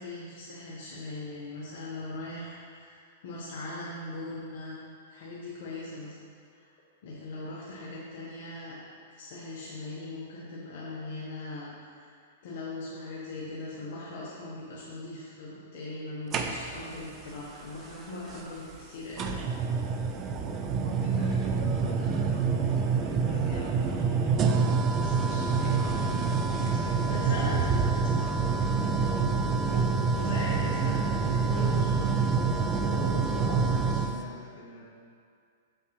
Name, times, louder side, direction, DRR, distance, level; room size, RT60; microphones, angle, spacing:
voice 1, 0.0-6.2 6.5-6.7 7.0-8.8 9.1-12.2 12.4-19.5 27.0-27.7 28.2-28.3 29.6-32.2 33.0-33.6, left 2 dB, 60° left, -7 dB, 1.2 m, -40 dB
sound 1, 16.3-17.0 18.3-18.4 19.2-34.2, right 5 dB, 25° right, 0.4 m, -27 dB
voice 2, 20.4-27.0 27.6-29.4 31.5-32.0 32.7-34.9, left 1 dB, 40° left, -5 dB, 1.6 m, -44 dB
6.9 x 5.7 x 3.2 m, 2.2 s
hypercardioid pair, 155°, 0 cm